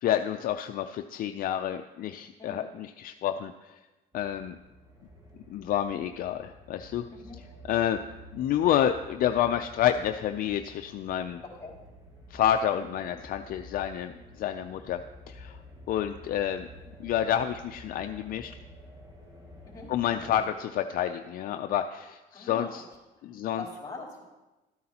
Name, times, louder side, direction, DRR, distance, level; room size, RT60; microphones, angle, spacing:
voice 1, 0.0-3.5 4.1-4.6 5.5-7.0 7.7-8.0 8.3-11.4 12.3-15.0 15.3-15.6 15.9-16.7 17.0-18.5 19.9-22.8 23.2-23.6, left 10 dB, 60° left, 7 dB, 0.4 m, -29 dB
sound 1, 4.1-20.4, left 1 dB, 20° right, 2.0 m, -50 dB
voice 2, 22.3-22.7 23.2-24.2, left 3 dB, 20° left, -2 dB, 3.4 m, -43 dB
13.0 x 9.4 x 2.9 m, 1.1 s
cardioid pair, 110°, 17 cm